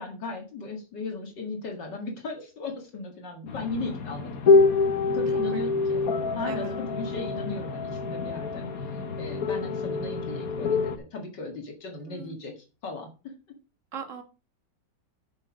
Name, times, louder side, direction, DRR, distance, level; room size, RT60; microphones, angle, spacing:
voice 1, 0.0-4.6 5.1-6.0 6.3-8.6 8.9-13.3, left 3 dB, 70° left, 2 dB, 2.5 m, -37 dB
sound 1, 3.5-11.0, left 4 dB, 55° left, 1.6 m, -26 dB
voice 2, 6.4-6.7 12.1-12.3 13.9-14.2, right 7 dB, 45° right, 6 dB, 1.8 m, -39 dB
8.0 x 7.5 x 5.2 m, 0.32 s
omnidirectional pair, 2.0 m